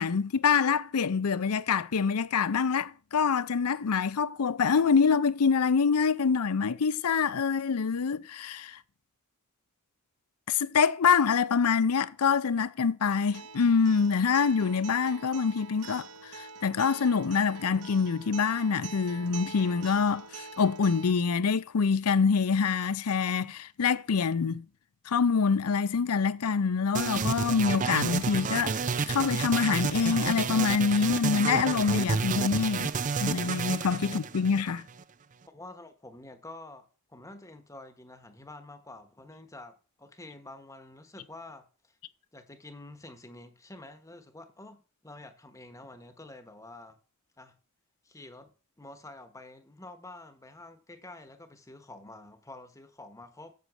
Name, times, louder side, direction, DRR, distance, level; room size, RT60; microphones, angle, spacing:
voice 1, 0.0-8.8 10.5-16.1 16.3-24.6 25.1-32.9 33.2-34.8, left 5 dB, 80° left, 0.5 m, -26 dB
Acoustic guitar, 13.1-21.1, right 4 dB, 85° right, 0.7 m, -45 dB
sound 1, 26.9-35.0, right 5 dB, 35° right, 0.4 m, -30 dB
voice 2, 35.5-42.0 42.3-47.0 47.4-47.5 48.0-48.5 48.8-53.5, left 2 dB, 15° left, 1.1 m, -48 dB
8.0 x 6.4 x 7.4 m
head